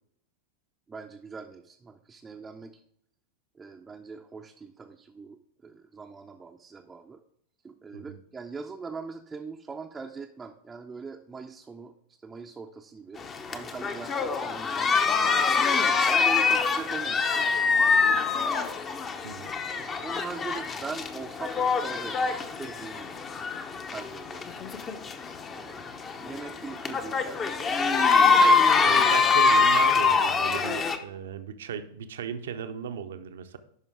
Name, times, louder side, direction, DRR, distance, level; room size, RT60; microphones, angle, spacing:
voice 1, 0.9-2.8 3.6-7.2 7.6-11.9 12.2-15.4 15.8-18.5 19.7-23.1 23.9-24.5 25.5-27.7, right 4 dB, 15° right, 3 dB, 0.5 m, -42 dB
sound 1, 13.2-31.0, left 4 dB, 25° left, 0.7 m, -24 dB
voice 2, 28.8-33.6, right 8 dB, 60° right, 10 dB, 0.7 m, -36 dB
11.0 x 5.2 x 3.5 m, 0.72 s
figure-of-eight pair, 90°, 0 cm